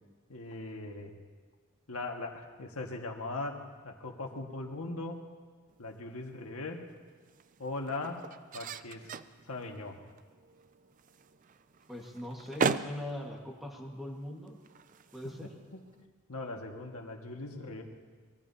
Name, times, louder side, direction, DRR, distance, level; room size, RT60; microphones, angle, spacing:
voice 1, 0.3-1.1 1.9-5.2 5.8-6.8 7.6-8.2 8.5-9.0 9.5-10.0 15.7-15.8 16.3-17.8, left 2 dB, 80° left, 2 dB, 1.7 m, -39 dB
sound 1, 5.7-16.0, right 4 dB, 35° right, 0.4 m, -40 dB
voice 2, 11.9-14.6 15.1-15.5, left 1 dB, ahead, -1 dB, 1.6 m, -41 dB
23.5 x 21.0 x 2.8 m, 1.5 s
head